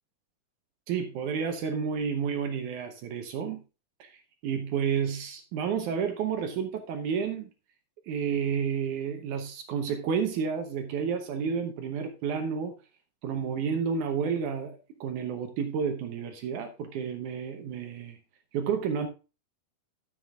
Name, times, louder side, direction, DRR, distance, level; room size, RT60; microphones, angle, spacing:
voice 1, 0.9-3.6 4.0-4.2 4.4-7.5 8.1-12.7 13.2-18.2 18.5-19.1, right 6 dB, 70° right, 6 dB, 2.1 m, -30 dB
13.0 x 7.4 x 2.4 m, 0.32 s
omnidirectional pair, 4.2 m